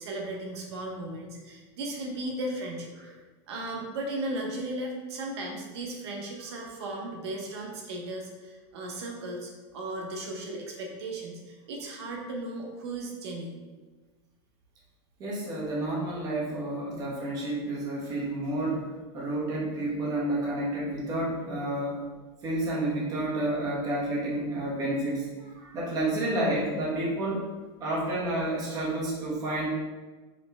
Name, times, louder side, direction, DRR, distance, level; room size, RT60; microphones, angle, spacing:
voice 1, 0.0-3.2 3.5-13.5, right 1 dB, 80° right, 0 dB, 0.9 m, -36 dB
voice 2, 15.2-22.0 22.4-27.5 27.8-29.7, right 1 dB, 25° right, -4 dB, 1.1 m, -30 dB
4.9 x 3.1 x 3.4 m, 1.3 s
supercardioid pair, 165°, 14 cm